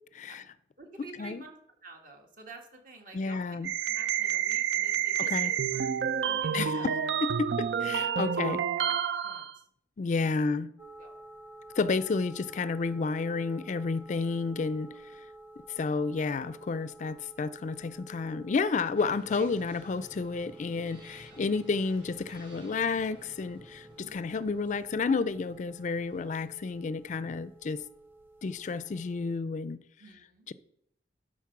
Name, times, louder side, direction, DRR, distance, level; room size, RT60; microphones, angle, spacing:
voice 1, 0.8-1.6 1.8-5.9 6.2-6.9 7.9-8.9 9.2-9.6 11.0-11.2 15.8-15.9 17.3-17.4 19.3-19.5 21.3-21.6 24.0-24.2 30.0-30.5, right 3 dB, 50° right, 1.7 m, -50 dB
voice 2, 3.1-3.7 5.2-5.5 6.5-6.9 7.2-8.6 10.0-10.7 11.8-15.2 15.8-27.8 28.4-29.8 30.5-30.6, left 4 dB, 45° left, 0.4 m, -31 dB
sound 1, 3.6-9.5, right 8 dB, 80° right, 0.5 m, -29 dB
sound 2, 10.8-29.4, right 2 dB, 10° right, 0.9 m, -52 dB
sound 3, 18.9-26.9, equal, 30° right, 3.0 m, -54 dB
12.0 x 4.2 x 5.8 m
head